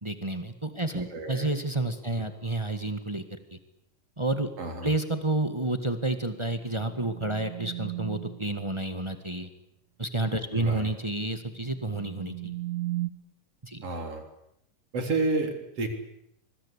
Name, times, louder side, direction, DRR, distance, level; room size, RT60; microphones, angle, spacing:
voice 1, 0.0-3.2 4.2-4.5 4.8-9.5 10.0-12.5 13.6-13.8, right 2 dB, 20° right, 8 dB, 0.8 m, -30 dB
voice 2, 0.9-1.5 2.2-2.3 4.6-4.9 10.5-10.9 13.8-14.2 14.9-15.9, right 3 dB, 45° right, 5 dB, 4.4 m, -31 dB
sound 1, 6.4-8.5 11.5-13.1, right 17 dB, 75° right, 2.8 m, -36 dB
26.0 x 21.5 x 8.4 m, 0.78 s
omnidirectional pair, 3.8 m